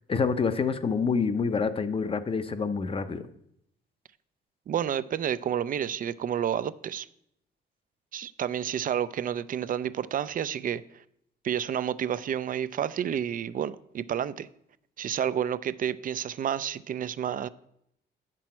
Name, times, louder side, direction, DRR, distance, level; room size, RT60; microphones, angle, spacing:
voice 1, 0.1-3.3, left 5 dB, 30° left, 12 dB, 0.6 m, -27 dB
voice 2, 4.7-7.1 8.1-10.8 11.4-14.5 15.0-17.5, right 9 dB, 45° right, 16 dB, 0.4 m, -30 dB
8.3 x 6.1 x 4.4 m, 0.75 s
cardioid pair, 90°, 20 cm